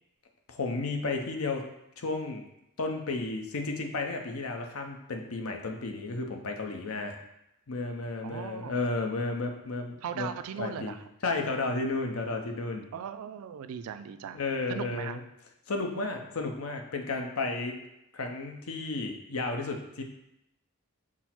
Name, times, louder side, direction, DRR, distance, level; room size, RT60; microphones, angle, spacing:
voice 1, 0.5-1.7 2.0-2.4 2.8-7.2 7.7-10.3 10.6-10.9 11.2-12.9 14.3-15.2 15.7-17.8 18.1-20.0, left 3 dB, 70° left, 3 dB, 0.7 m, -33 dB
voice 2, 8.2-8.8 10.0-11.1 12.9-14.4 14.7-15.2, right 8 dB, 70° right, 10 dB, 0.3 m, -38 dB
6.0 x 2.1 x 4.3 m, 0.84 s
head